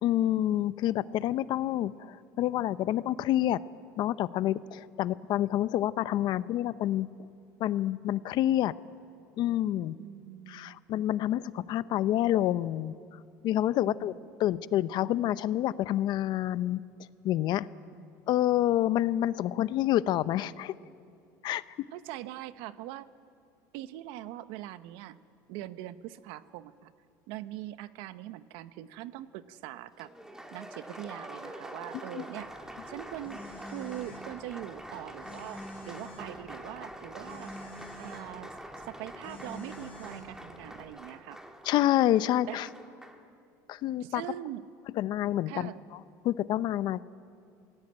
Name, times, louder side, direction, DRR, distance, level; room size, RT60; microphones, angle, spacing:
voice 1, 0.0-3.6 4.0-7.1 7.6-8.7 9.4-9.9 10.5-12.9 13.4-16.8 17.2-17.7 18.3-20.7 21.4-21.6 32.1-32.2 41.6-42.7 43.7-44.2 44.9-45.7 46.2-47.0, left 13 dB, 55° left, 16 dB, 0.7 m, -28 dB
voice 2, 10.0-10.9 13.8-14.1 17.9-18.1 21.9-23.1 23.7-25.2 25.5-26.9 27.3-30.1 30.5-32.5 32.9-33.4 33.6-35.6 35.9-37.5 38.0-41.4 42.5-42.6 44.0-44.7 45.5-45.8, right 14 dB, 75° right, 13 dB, 1.0 m, -42 dB
Applause, 30.0-43.2, right 1 dB, 5° right, 2.2 m, -45 dB
Telephone, 32.4-40.9, left 1 dB, 20° left, 7.9 m, -49 dB
27.5 x 18.5 x 8.9 m, 2.5 s
cardioid pair, 125°, 9 cm